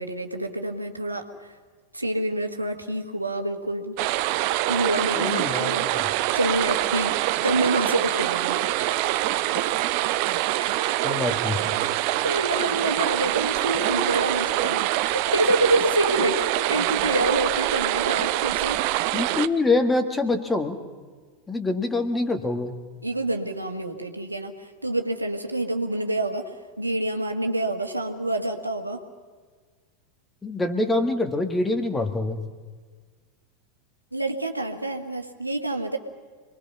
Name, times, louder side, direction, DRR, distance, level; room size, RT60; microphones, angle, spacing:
voice 1, 0.0-1.5 1.9-4.0 4.7-5.9 6.3-7.2 7.4-9.1 9.5-9.6 10.6-10.7 12.2-14.8 15.3-18.8 23.0-29.0 34.1-36.0, right 1 dB, 85° right, 5 dB, 1.8 m, -27 dB
sound 1, 4.0-19.5, right 15 dB, 50° right, 0.8 m, -25 dB
voice 2, 5.2-6.1 11.0-11.6 19.1-20.8 21.5-22.7 30.4-32.4, left 2 dB, 15° left, 7 dB, 2.2 m, -25 dB
27.0 x 21.0 x 5.7 m, 1.5 s
figure-of-eight pair, 85°, 0 cm